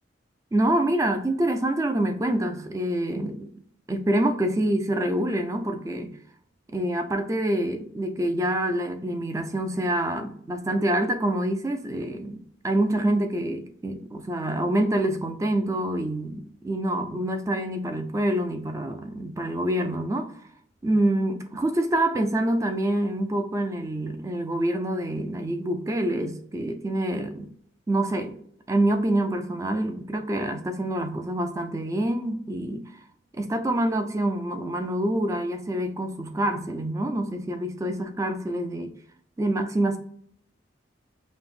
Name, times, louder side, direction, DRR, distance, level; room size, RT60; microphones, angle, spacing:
voice 1, 0.5-3.5 3.9-6.1 6.7-12.4 12.6-20.4 20.8-27.5 27.9-28.4 28.7-33.0 33.3-39.0 39.4-40.0, right 1 dB, 15° right, 0.3 m, -26 dB
5.2 x 2.0 x 2.4 m
head